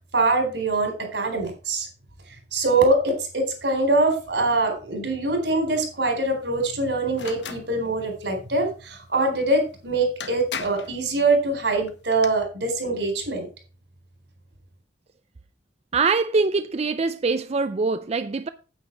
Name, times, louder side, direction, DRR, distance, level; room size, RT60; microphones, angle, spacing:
voice 1, 0.1-1.9 2.5-13.5, right 2 dB, 80° right, 4.1 m, -23 dB
sound 1, 7.1-7.7 9.7-9.8 10.2-10.9 11.9-12.3, left 6 dB, 80° left, 1.3 m, -35 dB
voice 2, 15.9-18.5, right 4 dB, 35° right, 0.5 m, -23 dB
9.4 x 8.8 x 4.6 m
head